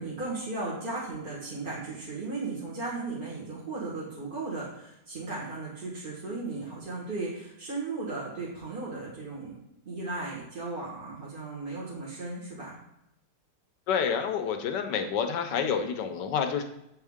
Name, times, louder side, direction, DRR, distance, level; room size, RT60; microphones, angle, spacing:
voice 1, 0.0-9.5 9.8-12.8, right 3 dB, 30° right, -7 dB, 1.6 m, -36 dB
voice 2, 13.9-16.6, left 7 dB, 80° left, 7 dB, 1.3 m, -28 dB
7.8 x 4.5 x 3.6 m, 0.83 s
omnidirectional pair, 1.9 m